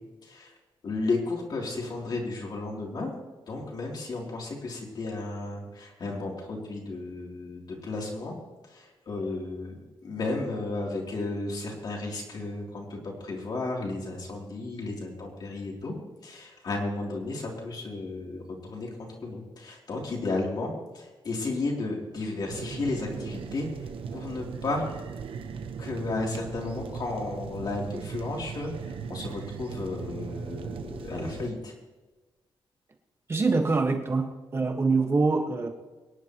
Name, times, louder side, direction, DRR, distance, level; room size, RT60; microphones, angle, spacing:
voice 1, 0.8-3.1 3.5-8.3 8.7-15.9 16.2-23.7 24.1-24.9 25.8-28.7 29.1-31.7, left 3 dB, 45° left, -1 dB, 3.2 m, -33 dB
sound 1, 22.5-31.5, right 6 dB, 70° right, 1.0 m, -38 dB
voice 2, 33.3-35.7, right 3 dB, 25° right, 3 dB, 1.5 m, -25 dB
24.5 x 10.5 x 3.1 m, 1.2 s
wide cardioid pair, 180°, 9 cm